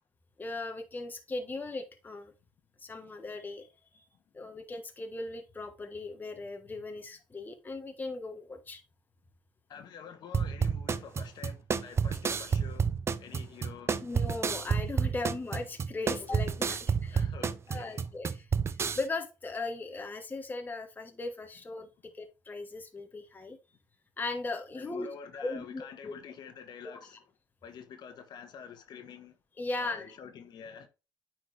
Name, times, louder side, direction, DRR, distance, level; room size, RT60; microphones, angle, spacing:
voice 1, 0.4-2.3 2.8-3.7 3.9-4.0 4.3-8.8 14.0-17.2 17.7-18.5 18.9-21.9 22.1-23.6 24.2-25.1 25.4-26.1 26.8-27.0 29.6-30.1, left 3 dB, 20° left, 1.3 m, -38 dB
voice 2, 9.7-14.1 17.1-18.1 24.7-27.3 27.6-29.4 29.8-30.9, left 7 dB, 55° left, 1.4 m, -48 dB
sound 1, 10.3-19.0, right 6 dB, 30° right, 0.6 m, -30 dB
9.1 x 4.5 x 3.3 m
supercardioid pair, 80°, 9 cm